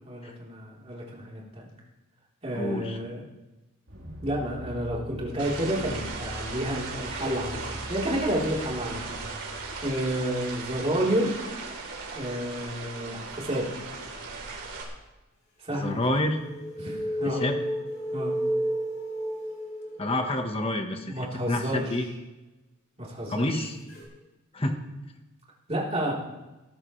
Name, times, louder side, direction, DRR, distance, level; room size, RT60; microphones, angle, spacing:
voice 1, 0.0-1.7 2.4-3.2 4.2-7.6 7.9-9.4 9.8-11.3 12.1-13.7 15.6-16.0 16.8-17.4 18.1-18.3 21.1-21.9 23.0-23.7 25.7-26.1, right 1 dB, 30° right, -4 dB, 3.8 m, -30 dB
voice 2, 2.5-3.0 15.7-16.4 17.2-17.6 20.0-21.2 21.5-22.1 23.3-23.8 24.5-24.8, left 1 dB, 25° left, 5 dB, 1.4 m, -28 dB
sound 1, 3.9-11.1, right 1 dB, 65° right, 3.9 m, -42 dB
sound 2, 5.4-14.8, right 4 dB, 85° right, 3.7 m, -38 dB
sound 3, 15.9-20.6 23.9-24.0, equal, 65° left, 5.9 m, -32 dB
21.0 x 13.5 x 3.3 m, 1.1 s
head